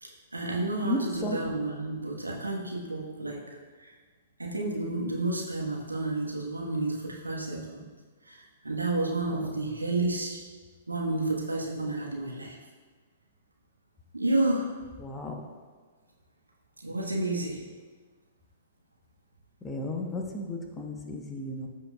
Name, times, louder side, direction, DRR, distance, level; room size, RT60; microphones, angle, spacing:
voice 1, 0.0-3.4 3.8-3.9 4.4-7.9 8.3-10.4 10.9-12.6 14.1-14.7 16.8-17.6, right 2 dB, 85° right, -1 dB, 1.4 m, -31 dB
voice 2, 0.8-1.4 15.0-15.3 19.6-21.7, left 1 dB, 15° left, 1 dB, 1.0 m, -33 dB
14.5 x 5.3 x 2.4 m, 1.5 s
figure-of-eight pair, 110°, 0 cm